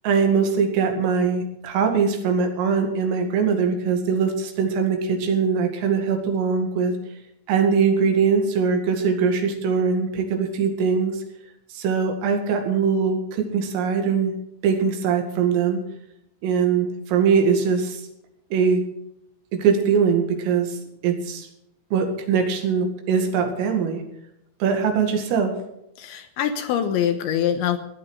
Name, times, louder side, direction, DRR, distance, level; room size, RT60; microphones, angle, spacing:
voice 1, 0.0-6.9 7.5-11.2 11.7-14.3 14.6-15.8 16.4-18.0 18.5-18.8 19.5-21.5 21.9-24.0 24.6-25.5, right 6 dB, 75° right, 5 dB, 4.8 m, -22 dB
voice 2, 26.0-27.8, left 9 dB, 75° left, 8 dB, 3.0 m, -24 dB
16.0 x 11.0 x 6.4 m, 0.81 s
omnidirectional pair, 6.0 m